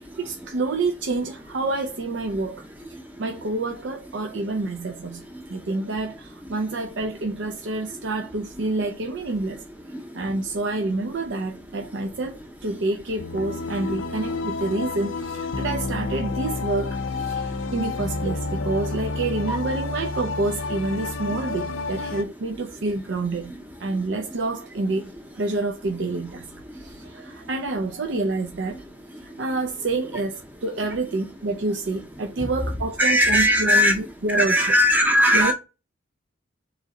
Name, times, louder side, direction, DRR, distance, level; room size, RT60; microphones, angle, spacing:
voice 1, 0.2-5.2 5.5-9.6 10.1-23.5 23.8-26.4 26.8-28.8 29.2-34.7 35.3-35.5, right 2 dB, 60° right, 0.5 m, -28 dB
sound 1, 13.2-22.2, left 3 dB, 75° left, 0.5 m, -30 dB
voice 2, 26.8-27.3 32.4-32.5 33.0-34.0 34.3-35.5, equal, 10° right, 0.7 m, -20 dB
3.8 x 3.1 x 3.7 m
head